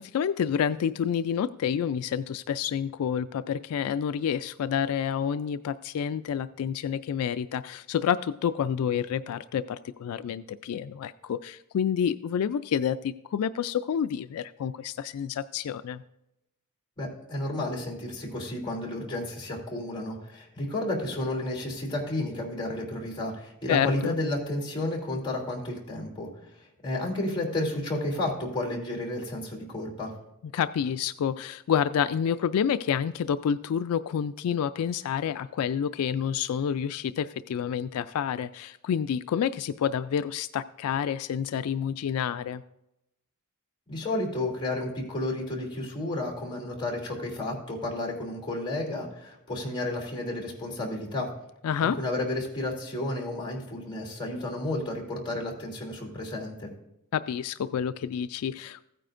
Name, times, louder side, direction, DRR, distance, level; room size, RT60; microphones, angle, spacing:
voice 1, 0.0-16.0 23.7-24.1 30.5-42.6 51.6-52.0 57.1-58.8, left 8 dB, 80° left, 13 dB, 0.3 m, -29 dB
voice 2, 17.0-26.3 26.8-30.1 43.9-51.3 51.8-56.7, left 1 dB, 20° left, -2 dB, 2.8 m, -32 dB
15.5 x 9.1 x 2.5 m, 0.85 s
head